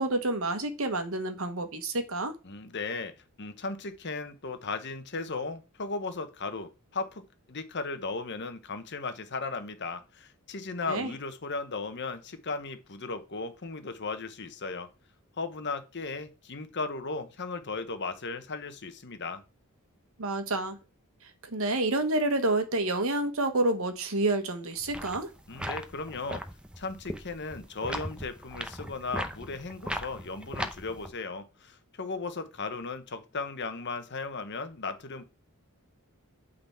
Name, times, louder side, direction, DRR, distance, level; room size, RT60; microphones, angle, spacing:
voice 1, 0.0-2.3 10.9-11.1 20.2-20.8 21.2-25.3, right 2 dB, 65° right, 1.4 m, -29 dB
voice 2, 2.4-14.9 15.4-19.4 25.5-26.4 26.8-35.2, left 3 dB, 50° left, 1.1 m, -36 dB
sound 1, 24.8-31.1, equal, 5° right, 0.7 m, -38 dB
8.7 x 4.0 x 5.8 m
head